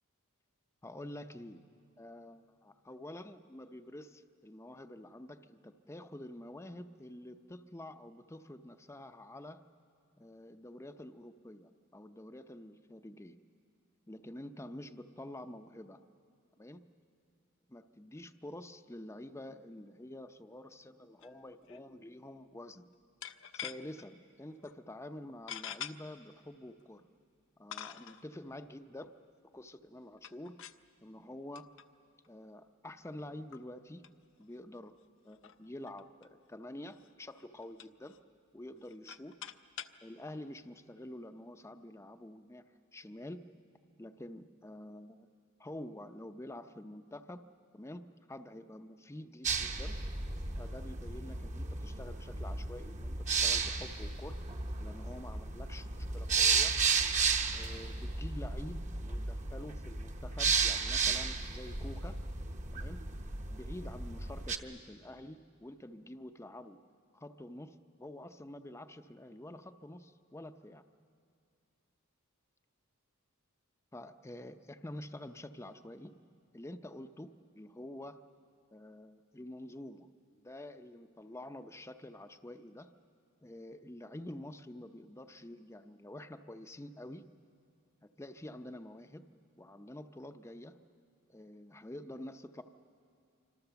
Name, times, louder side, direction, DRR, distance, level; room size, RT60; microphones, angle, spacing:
voice 1, 0.8-1.6 2.0-9.6 10.2-13.4 14.1-16.0 16.6-16.8 17.7-22.9 23.5-27.1 27.6-29.1 29.5-30.6 31.0-31.7 32.3-34.0 34.4-35.0 35.2-38.2 38.5-39.4 40.0-42.6 42.9-43.4 44.0-45.3 45.6-47.4 47.7-50.0 50.6-54.4 54.8-56.8 57.5-62.2 62.7-63.0 63.5-66.8 67.1-70.8 73.9-76.1 76.5-78.2 78.7-82.9 83.4-87.2 88.2-89.2 89.6-90.8 91.3-92.6, left 1 dB, 15° left, 8 dB, 0.6 m, -48 dB
sound 1, 21.2-21.4 21.7-21.8 23.2-24.0 24.6-24.7 25.5-25.9 26.8-26.9 27.7-28.2 30.2-30.9 31.5-31.8 32.2-32.3 33.1-33.2 33.5-33.7 34.0-34.1 34.4-34.5 34.8-34.9 35.3-36.3 36.9-37.1 37.4-38.2 38.8-40.0, left 9 dB, 60° left, 0.7 m, -45 dB
sound 2, 49.4-64.6, right 5 dB, 35° right, 0.9 m, -34 dB
26.0 x 25.5 x 7.0 m, 2.4 s
head